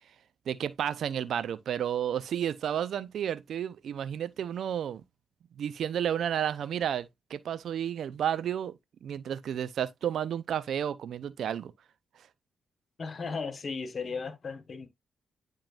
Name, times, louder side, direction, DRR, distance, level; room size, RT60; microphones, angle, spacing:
voice 1, 0.5-5.0 5.6-11.7, right 9 dB, 70° right, 0.5 m, -32 dB
voice 2, 13.0-14.9, left 4 dB, 50° left, 1.3 m, -36 dB
10.5 x 3.7 x 2.5 m
supercardioid pair, 45°, 0 cm